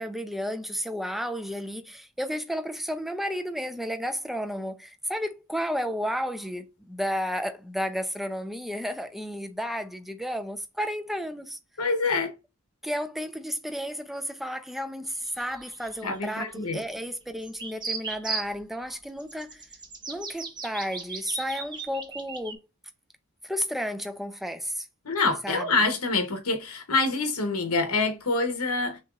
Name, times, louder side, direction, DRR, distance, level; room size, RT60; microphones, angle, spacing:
voice 1, 0.0-11.6 12.8-19.7 20.1-22.6 23.4-24.9 25.4-25.8, equal, ahead, 0.4 m, -32 dB
voice 2, 11.8-12.3 16.0-16.8 25.1-29.0, left 3 dB, 70° left, 0.9 m, -26 dB
sound 1, 15.1-16.7 17.4-18.5 19.2-22.6, right 4 dB, 20° right, 0.8 m, -37 dB
5.9 x 2.9 x 2.3 m
head